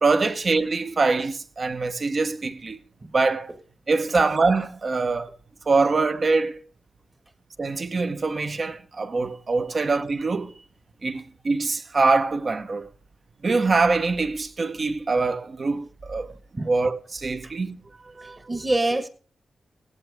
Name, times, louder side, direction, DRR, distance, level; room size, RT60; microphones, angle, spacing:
voice 1, 0.0-2.8 3.1-3.5 3.9-5.3 5.7-6.6 7.6-10.6 11.0-12.9 13.4-16.3 16.7-17.8 18.2-18.4, right 3 dB, 40° right, 1.0 m, -24 dB
voice 2, 18.2-19.1, right 2 dB, 25° right, 1.5 m, -26 dB
17.5 x 14.5 x 3.6 m
wide cardioid pair, 140°, 0 cm